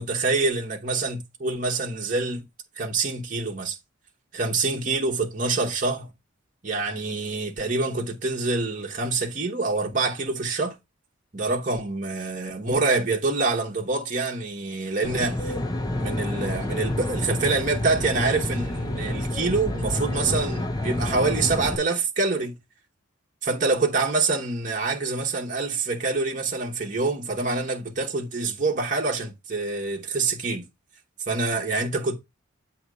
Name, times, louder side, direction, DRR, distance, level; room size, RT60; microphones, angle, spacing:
voice 1, 0.0-2.4 2.8-3.8 4.3-6.1 6.6-10.8 11.3-15.6 16.0-22.6 23.4-30.6 31.3-32.1, right 3 dB, 40° right, 1.1 m, -26 dB
Aircraft, 15.0-21.8, left 1 dB, 20° left, 0.6 m, -28 dB
7.9 x 3.0 x 6.1 m
head